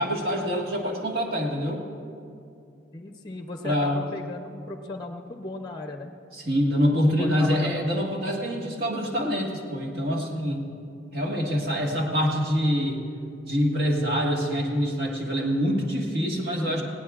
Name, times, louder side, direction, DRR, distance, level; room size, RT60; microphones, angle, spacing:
voice 1, 0.0-1.8 3.6-4.0 6.3-10.6 11.1-13.0 13.4-16.8, equal, 55° right, -2 dB, 1.7 m, -25 dB
voice 2, 2.9-6.1 7.2-8.0 8.5-8.7, left 2 dB, 20° left, 4 dB, 0.6 m, -36 dB
19.0 x 17.5 x 2.4 m, 2.4 s
head